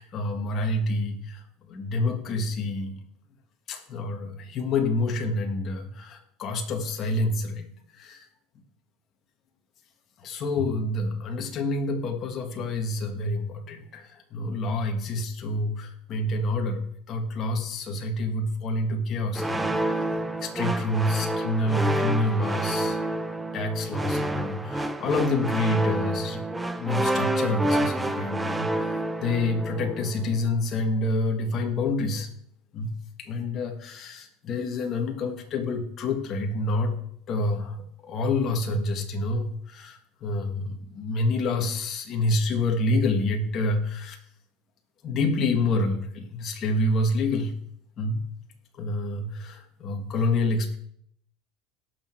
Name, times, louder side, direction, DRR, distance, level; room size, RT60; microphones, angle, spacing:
voice 1, 0.0-2.9 3.7-7.7 7.9-8.3 10.2-20.0 20.4-26.4 26.7-28.9 29.2-32.3 32.7-36.9 37.3-37.8 38.0-44.2 45.0-47.5 48.0-48.2 48.8-50.8, left 2 dB, 35° left, 3 dB, 1.7 m, -28 dB
sound 1, 19.3-30.3, right 1 dB, 5° right, 0.6 m, -28 dB
17.5 x 6.2 x 4.6 m, 0.68 s
supercardioid pair, 150°, 0 cm